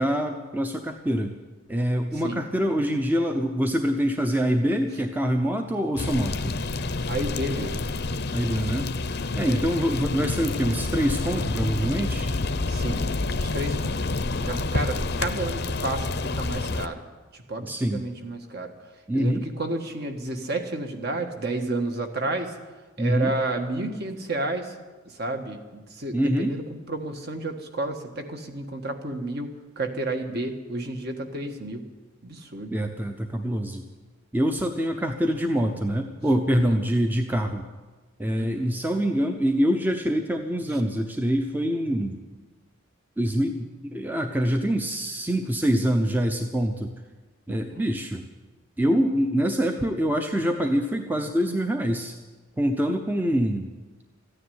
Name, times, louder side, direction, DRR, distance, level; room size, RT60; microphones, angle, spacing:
voice 1, 0.0-1.3 1.7-6.6 8.3-8.9 9.4-12.3 17.6-18.0 19.1-19.4 23.0-23.3 26.1-26.5 32.7-33.8 34.3-37.6 38.2-42.2 43.2-46.9 47.5-48.2 48.8-52.1 52.6-53.7, equal, 10° right, 5 dB, 0.7 m, -25 dB
voice 2, 2.1-2.4 7.1-7.9 9.4-9.6 12.7-13.0 13.3-14.0 14.3-17.0 17.3-18.7 19.1-22.6 23.0-24.8 25.0-26.6 26.9-31.8 32.2-32.8 36.7-36.8 38.3-38.7 40.7-40.8 47.5-47.8, right 2 dB, 50° right, 5 dB, 1.5 m, -31 dB
sound 1, 6.0-16.9, left 3 dB, 50° left, 0.7 m, -28 dB
14.0 x 9.9 x 9.3 m, 1.3 s
head